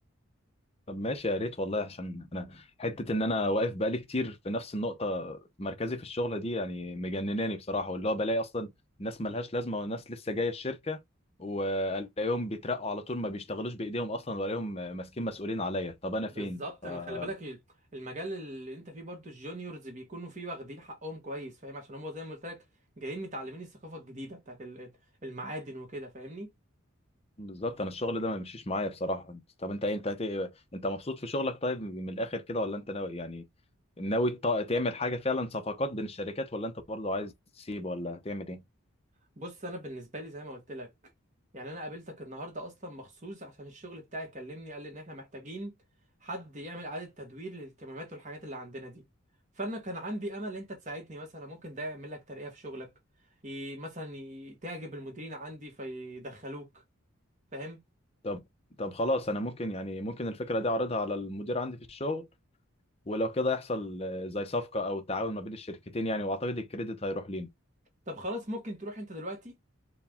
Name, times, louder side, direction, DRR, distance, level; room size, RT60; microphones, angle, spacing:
voice 1, 0.9-8.7 9.0-11.0 11.4-17.3 27.4-33.4 34.0-38.6 58.2-58.4 58.8-62.3 63.1-67.5, left 1 dB, 30° left, 0.7 m, -32 dB
voice 2, 16.3-17.6 17.9-22.6 23.0-24.9 25.2-26.5 39.4-40.9 41.5-45.7 46.2-49.0 49.6-52.9 53.4-56.8 57.5-57.8 68.1-69.5, equal, 35° right, 1.4 m, -40 dB
4.7 x 2.3 x 3.5 m
head